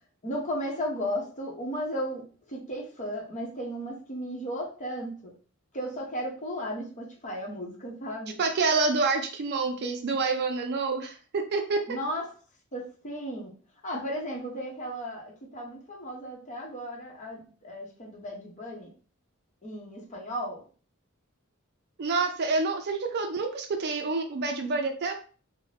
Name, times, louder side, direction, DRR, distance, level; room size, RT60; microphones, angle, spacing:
voice 1, 0.2-5.3 5.7-8.4 11.9-12.3 12.7-13.5 13.8-18.9 19.6-20.6, equal, 35° left, -2 dB, 0.8 m, -35 dB
voice 2, 8.4-12.0 22.0-25.1, right 3 dB, 50° right, 5 dB, 0.4 m, -27 dB
2.6 x 2.1 x 3.2 m, 0.39 s
head